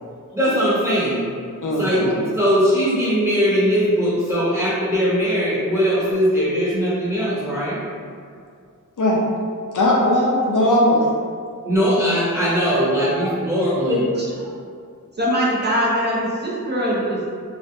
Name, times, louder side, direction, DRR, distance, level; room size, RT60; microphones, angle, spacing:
voice 1, 0.3-1.3 1.8-7.8 11.6-14.0, equal, 10° right, -10 dB, 0.9 m, -20 dB
voice 2, 1.6-2.0 9.0-9.2 9.7-11.2, left 1 dB, 70° left, -4 dB, 0.5 m, -18 dB
voice 3, 13.9-14.3 15.2-17.3, equal, 35° right, -6 dB, 0.5 m, -22 dB
2.4 x 2.1 x 2.8 m, 2.2 s
wide cardioid pair, 90°, 32 cm